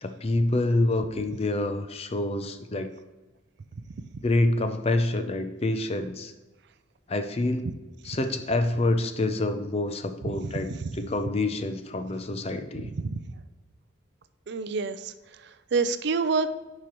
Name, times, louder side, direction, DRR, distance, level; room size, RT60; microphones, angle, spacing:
voice 1, 0.0-2.9 4.2-6.3 7.1-7.7 8.1-12.9, left 2 dB, 30° left, 8 dB, 0.5 m, -27 dB
voice 2, 10.3-10.9 12.9-13.2 14.5-16.5, right 4 dB, 55° right, 12 dB, 0.4 m, -29 dB
11.0 x 4.8 x 3.0 m, 1.2 s
head